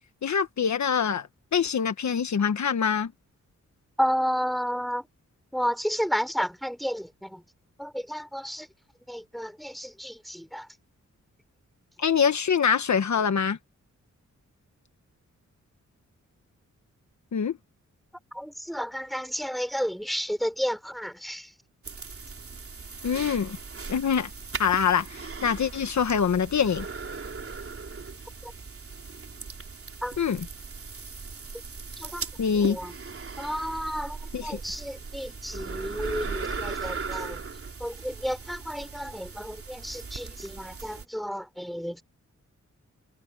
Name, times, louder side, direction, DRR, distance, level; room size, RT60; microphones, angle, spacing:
voice 1, 0.2-1.3 1.5-3.1 12.0-13.6 17.3-17.5 23.0-23.6 23.9-24.3 24.6-26.9 30.2-30.5 32.4-32.8 34.3-34.6, left 7 dB, 65° left, 1.3 m, -24 dB
voice 2, 4.0-5.0 5.5-7.4 7.8-8.7 9.1-10.7 18.3-21.5 28.4-28.5 30.0-30.1 32.0-32.2 32.6-32.9 33.4-37.4 37.8-42.0, equal, ahead, 4.5 m, -32 dB
sound 1, 21.8-41.1, right 4 dB, 45° right, 3.6 m, -38 dB
wide cardioid pair, 85°, 31 cm